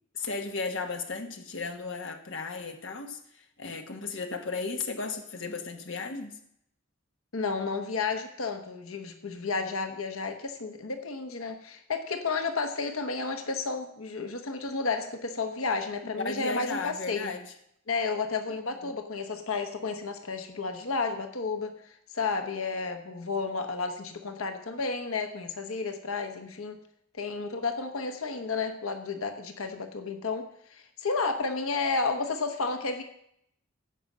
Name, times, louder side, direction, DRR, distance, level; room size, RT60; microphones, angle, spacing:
voice 1, 0.1-6.4 16.1-17.5 18.8-19.0, left 4 dB, 60° left, 5 dB, 1.2 m, -35 dB
voice 2, 7.3-17.3 17.9-21.7 22.1-26.8 27.2-30.4 30.7-33.0, left 4 dB, 80° left, 6 dB, 1.1 m, -32 dB
16.0 x 5.4 x 7.4 m, 0.73 s
head